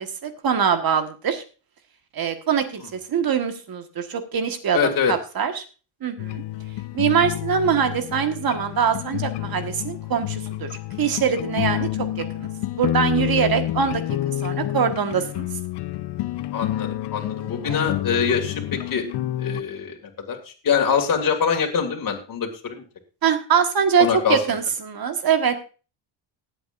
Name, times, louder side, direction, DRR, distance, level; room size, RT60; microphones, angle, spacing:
voice 1, 0.0-1.4 2.1-5.6 6.0-6.4 6.9-10.7 11.0-12.5 12.7-14.0 14.4-15.5 17.7-17.8 23.2-25.6, right 7 dB, 50° right, 8 dB, 1.5 m, -23 dB
voice 2, 4.7-5.1 16.5-19.0 19.4-22.8 24.0-24.4, left 7 dB, 45° left, 2 dB, 2.4 m, -24 dB
sound 1, 6.2-19.6, left 14 dB, 60° left, 0.6 m, -29 dB
19.5 x 8.0 x 2.5 m, 0.34 s
cardioid pair, 120°, 47 cm